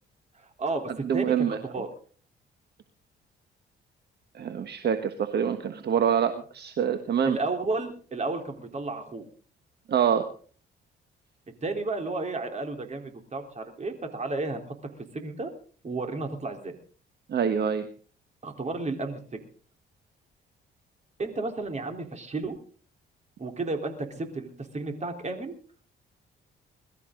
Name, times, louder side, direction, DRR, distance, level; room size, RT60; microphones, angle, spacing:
voice 1, 0.4-1.9 7.2-9.2 11.6-14.8 15.1-15.5 15.8-16.8 18.4-19.2 21.2-22.6 23.4-25.5, right 3 dB, 35° right, 4 dB, 3.8 m, -32 dB
voice 2, 1.0-1.6 4.3-7.4 9.9-10.3 17.3-17.9, right 8 dB, 55° right, 8 dB, 1.4 m, -25 dB
22.5 x 13.0 x 3.9 m, 0.43 s
cardioid pair, 90°, 20 cm